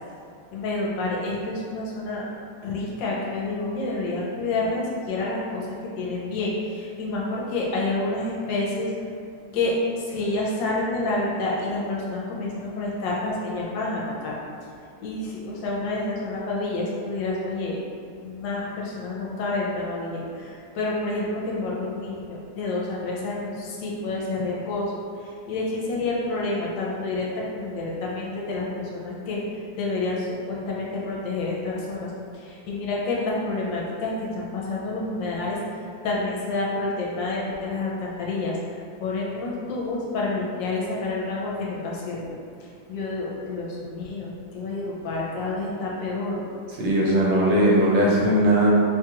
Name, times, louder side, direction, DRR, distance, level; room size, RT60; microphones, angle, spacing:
voice 1, 0.5-2.3 2.6-5.7 6.0-8.9 9.5-14.4 15.0-17.8 18.2-24.9 25.2-42.3 42.9-46.5, left 2 dB, 75° left, -4 dB, 1.3 m, -29 dB
voice 2, 46.8-48.7, right 1 dB, 75° right, -4 dB, 1.3 m, -19 dB
3.2 x 2.3 x 2.8 m, 2.3 s
omnidirectional pair, 2.1 m